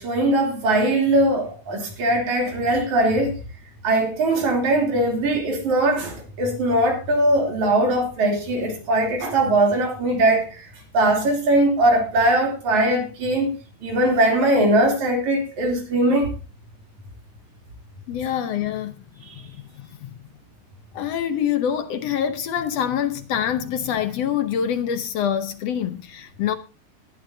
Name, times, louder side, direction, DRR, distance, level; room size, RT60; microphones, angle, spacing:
voice 1, 0.0-3.3 3.8-10.7 10.9-13.5 13.8-16.3, right 1 dB, 75° right, 4.5 m, -20 dB
voice 2, 18.1-19.0 19.4-19.6 20.0-20.1 20.9-26.6, left 9 dB, 65° left, 1.8 m, -25 dB
19.0 x 12.0 x 2.7 m
omnidirectional pair, 3.4 m